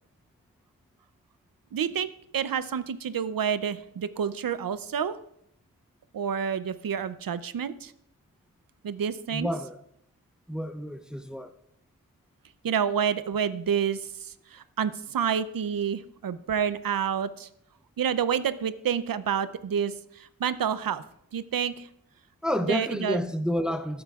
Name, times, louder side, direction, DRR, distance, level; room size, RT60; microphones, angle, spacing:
voice 1, 1.7-2.1 2.3-5.1 6.1-7.9 8.8-9.5 12.6-17.5 18.0-21.0 21.3-21.9 22.7-23.2, right 8 dB, 70° right, 0.6 m, -29 dB
voice 2, 9.3-9.8 10.5-11.5 22.4-24.0, equal, ahead, 0.5 m, -29 dB
14.5 x 7.8 x 2.4 m
wide cardioid pair, 75°, 35 cm